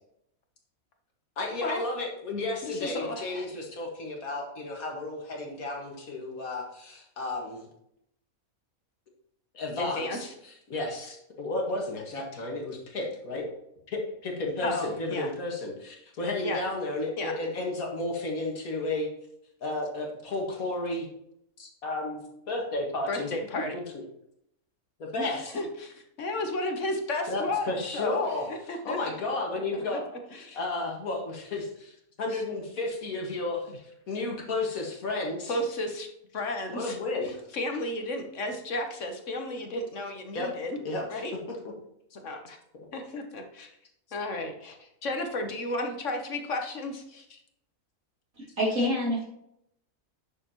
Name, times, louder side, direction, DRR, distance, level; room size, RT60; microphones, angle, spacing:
voice 1, 1.4-7.7 9.5-13.5 13.9-19.1 19.6-21.1 21.6-22.2 22.5-23.3 23.7-23.8 25.0-25.5 27.3-28.5 28.8-30.0 30.3-33.7 34.1-35.6 36.7-37.4 40.3-40.5 40.8-41.6, left 2 dB, 80° left, 0 dB, 2.2 m, -32 dB
voice 2, 2.6-3.5 9.8-10.3 14.6-15.3 16.4-16.6 17.2-17.3 23.1-23.7 25.2-28.2 28.5-29.0 29.7-30.0 30.3-30.6 32.3-32.4 35.5-36.1 36.3-37.0 37.2-40.8 41.1-41.3 42.1-42.6 42.9-43.7 44.1-47.4, left 2 dB, 60° left, 4 dB, 1.4 m, -33 dB
voice 3, 48.4-49.2, left 1 dB, 65° right, -4 dB, 3.3 m, -27 dB
9.7 x 6.8 x 3.0 m, 0.77 s
omnidirectional pair, 1.5 m